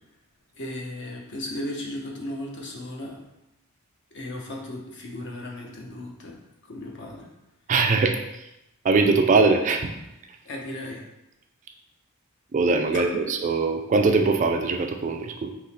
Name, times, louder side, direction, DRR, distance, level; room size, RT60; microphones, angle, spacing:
voice 1, 0.6-3.2 4.1-6.3 6.6-7.3 10.4-11.0 12.9-13.0, left 1 dB, 55° left, 0 dB, 0.8 m, -35 dB
voice 2, 7.7-8.2 8.8-9.9 12.5-15.5, right 3 dB, 35° right, 5 dB, 0.3 m, -21 dB
3.8 x 2.9 x 4.2 m, 0.90 s
head